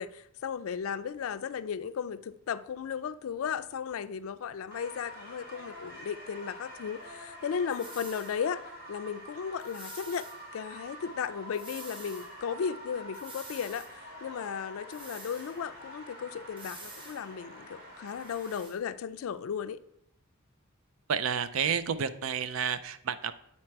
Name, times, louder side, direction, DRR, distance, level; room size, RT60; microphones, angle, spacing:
voice 1, 0.0-8.6 8.9-10.3 10.5-19.8, left 7 dB, 80° left, 0.4 m, -35 dB
sound 1, 4.7-18.6, equal, 45° right, 1.8 m, -47 dB
sound 2, 7.7-8.4 9.6-10.4 11.5-12.3 13.1-13.9 14.9-15.6 16.6-17.2 18.1-18.8, right 2 dB, 25° right, 1.0 m, -48 dB
voice 2, 21.1-23.3, right 7 dB, 70° right, 0.4 m, -30 dB
8.7 x 4.3 x 4.5 m
head